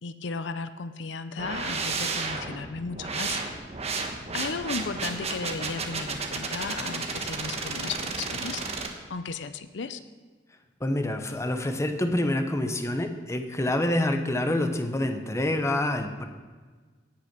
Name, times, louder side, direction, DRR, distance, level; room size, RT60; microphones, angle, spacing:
voice 1, 0.0-3.4 4.3-8.6 9.1-10.0, left 4 dB, 70° left, 11 dB, 0.6 m, -35 dB
sound 1, 1.4-8.9, right 4 dB, 35° right, 1.2 m, -32 dB
voice 2, 10.8-16.2, left 1 dB, 15° left, 6 dB, 0.9 m, -27 dB
17.0 x 5.8 x 6.0 m, 1.4 s
head